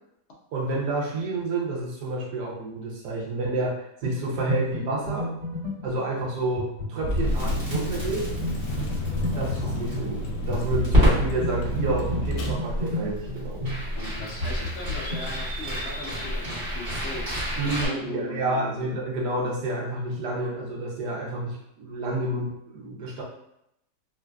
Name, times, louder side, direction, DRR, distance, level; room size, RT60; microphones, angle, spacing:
voice 1, 0.5-5.3 5.8-8.3 8.9-13.7 17.6-23.2, right 2 dB, 75° right, -3 dB, 1.3 m, -29 dB
sound 1, 4.0-15.3, left 1 dB, 55° right, 1.7 m, -33 dB
Crackle, 7.0-17.9, equal, 35° right, 1.3 m, -29 dB
Vehicle, 7.1-12.5, equal, 80° left, 1.2 m, -32 dB
voice 2, 13.9-18.9, left 2 dB, 65° left, -2 dB, 0.7 m, -38 dB
3.1 x 2.4 x 2.2 m, 0.81 s
omnidirectional pair, 1.8 m